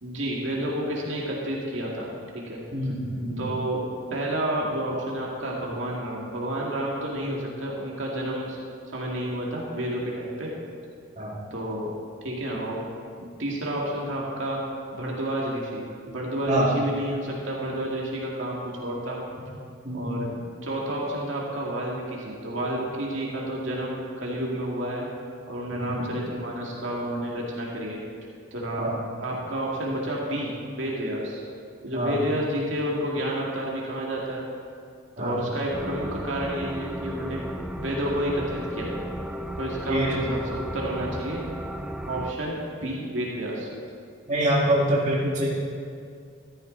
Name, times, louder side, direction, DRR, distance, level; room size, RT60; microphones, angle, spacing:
voice 1, 0.0-2.1 2.5-2.6 3.4-3.8 4.1-8.6 8.9-10.5 11.5-11.9 12.2-12.8 13.2-14.6 14.9-19.2 19.9-20.3 20.6-25.1 25.5-28.0 28.5-28.9 29.2-31.4 31.8-34.4 35.2-37.4 37.8-39.0 39.6-41.4 42.1-43.7, right 1 dB, 65° right, -3 dB, 2.3 m, -30 dB
voice 2, 2.7-3.4 11.2-11.4 16.5-16.7 19.8-20.3 25.7-26.0 28.8-28.9 31.9-32.2 35.2-35.4 39.9-40.3 44.3-45.5, right 1 dB, 35° right, -5 dB, 2.4 m, -25 dB
sound 1, 35.7-42.3, equal, 5° right, 0.4 m, -35 dB
14.5 x 13.0 x 4.0 m, 2.3 s
head